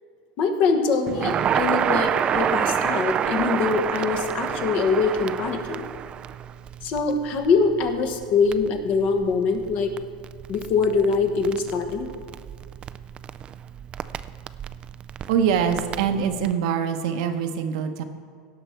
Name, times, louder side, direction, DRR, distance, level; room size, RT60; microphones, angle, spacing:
voice 1, 0.4-5.8 6.8-9.9 10.5-12.1, left 4 dB, 50° left, 6 dB, 1.3 m, -23 dB
Crackle, 1.1-16.5, right 9 dB, 30° right, 0.3 m, -29 dB
voice 2, 15.3-18.0, right 7 dB, 75° right, 7 dB, 1.0 m, -24 dB
17.0 x 5.9 x 4.5 m, 2.2 s
supercardioid pair, 130°, 3 cm